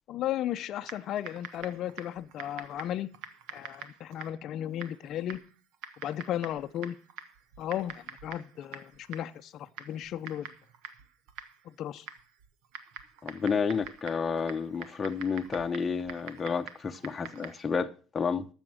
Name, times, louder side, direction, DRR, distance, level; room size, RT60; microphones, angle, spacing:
voice 1, 0.1-3.1 3.5-5.4 6.0-7.0 7.6-10.5 11.6-12.1, left 11 dB, 55° left, 0.6 m, -35 dB
Typing, 0.8-17.7, right 7 dB, 70° right, 1.3 m, -47 dB
voice 2, 13.2-18.5, left 5 dB, 25° left, 0.9 m, -31 dB
13.0 x 7.1 x 6.3 m
supercardioid pair, 110°, 0 cm